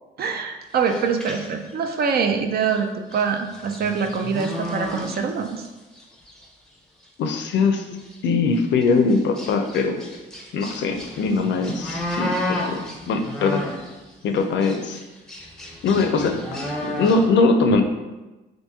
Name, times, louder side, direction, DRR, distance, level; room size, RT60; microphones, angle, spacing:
voice 1, 0.2-5.6, right 6 dB, 50° right, 5 dB, 0.4 m, -24 dB
sound 1, 0.7-2.1 2.6-2.8 3.1-5.7 5.9-6.4 7.0-7.1 7.5-7.6 7.9-8.2 8.8-14.0 14.3-17.3, left 1 dB, 5° left, 0.6 m, -33 dB
voice 2, 7.2-7.8 8.2-10.0 10.5-13.6 14.2-15.0 15.8-16.4 16.8-17.8, left 4 dB, 65° left, 5 dB, 0.4 m, -21 dB
2.9 x 2.6 x 3.5 m, 1.1 s
cardioid pair, 90°, 20 cm